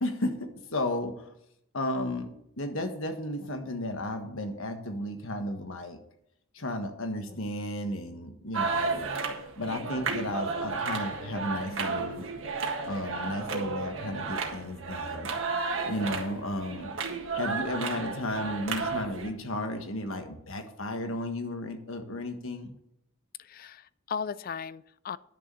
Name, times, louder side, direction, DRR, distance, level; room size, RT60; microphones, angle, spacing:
voice 1, 0.0-1.3 1.7-2.3 2.6-6.0 6.5-9.1 9.6-12.3 12.9-15.4 15.9-16.9 17.3-22.7, left 1 dB, 70° left, 6 dB, 1.5 m, -34 dB
sound 1, 8.5-19.3, right 4 dB, 65° right, 1.6 m, -33 dB
voice 2, 23.4-25.2, left 6 dB, 45° left, 18 dB, 0.4 m, -37 dB
10.5 x 6.5 x 6.8 m, 0.76 s
head